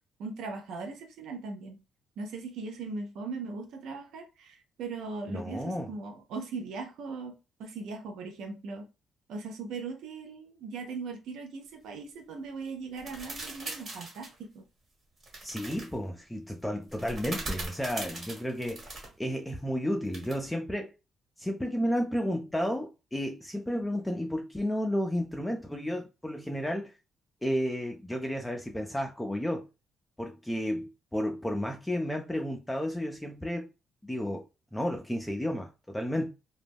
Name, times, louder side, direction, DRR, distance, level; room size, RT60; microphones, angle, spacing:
voice 1, 0.2-1.8 2.2-7.3 7.6-8.9 9.3-14.6, right 4 dB, 80° right, 0.4 m, -39 dB
voice 2, 5.3-5.9 15.4-18.9 19.2-20.9 21.4-26.9 27.4-29.7 30.2-33.7 34.0-34.4 34.7-36.3, equal, 5° left, 0.3 m, -32 dB
sound 1, 13.0-14.3 15.2-15.9 16.9-19.1 20.1-20.5, right 2 dB, 45° right, 1.2 m, -40 dB
2.1 x 2.0 x 3.3 m
cardioid pair, 90°, 0 cm